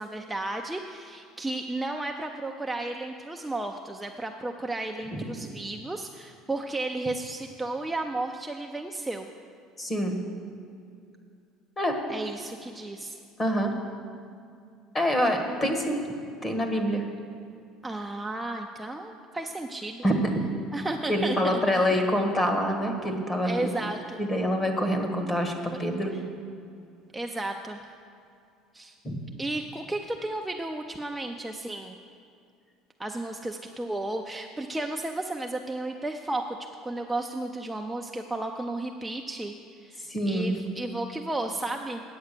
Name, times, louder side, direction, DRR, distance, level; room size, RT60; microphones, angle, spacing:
voice 1, 0.0-9.3 12.1-13.2 17.8-20.0 20.7-21.6 23.5-24.2 27.1-27.8 28.7-28.9 29.4-32.0 33.0-36.6 36.8-42.0, right 2 dB, 10° right, 2 dB, 0.5 m, -33 dB
voice 2, 9.8-10.2 11.8-12.0 13.4-13.7 14.9-16.0 16.4-17.0 20.0-20.4 21.1-23.7 24.2-26.1 29.0-29.2 40.1-40.6, equal, 25° left, 4 dB, 1.4 m, -26 dB
9.2 x 7.9 x 6.7 m, 2.4 s
cardioid pair, 120°, 0 cm